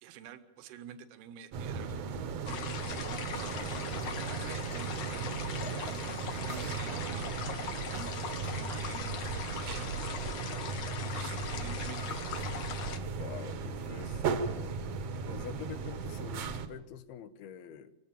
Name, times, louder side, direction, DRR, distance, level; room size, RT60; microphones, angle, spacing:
voice 1, 0.0-3.6 4.2-7.3 7.6-10.4 10.8-12.2, right 10 dB, 85° right, 9 dB, 3.1 m, -49 dB
sound 1, 1.5-16.7, right 5 dB, 65° right, 1.7 m, -36 dB
sound 2, 2.5-13.0, left 7 dB, 60° left, 2.7 m, -41 dB
voice 2, 13.2-14.8 15.3-18.0, left 8 dB, 85° left, 10 dB, 3.0 m, -46 dB
24.5 x 16.5 x 7.4 m, 1.0 s
omnidirectional pair, 4.4 m